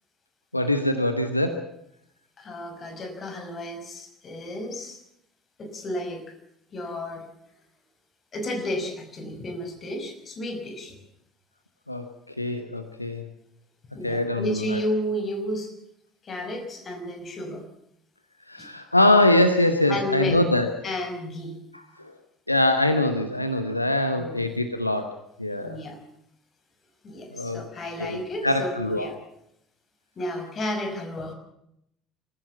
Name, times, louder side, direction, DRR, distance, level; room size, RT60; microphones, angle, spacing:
voice 1, 0.5-1.7 11.9-12.0 12.4-13.3 14.0-14.8 18.5-20.7 22.0-22.1 22.5-25.8 27.3-27.7 28.0-29.1, left 1 dB, 90° left, 8 dB, 1.1 m, -23 dB
voice 2, 2.4-5.0 5.6-6.3 6.7-7.3 8.3-11.0 13.9-15.7 16.2-17.7 18.6-18.7 19.9-20.4 20.8-21.6 24.1-24.4 25.6-26.0 27.0-29.2 30.2-31.3, left 1 dB, 35° left, 6 dB, 5.5 m, -32 dB
25.5 x 15.5 x 7.1 m, 0.76 s
figure-of-eight pair, 60°, 0 cm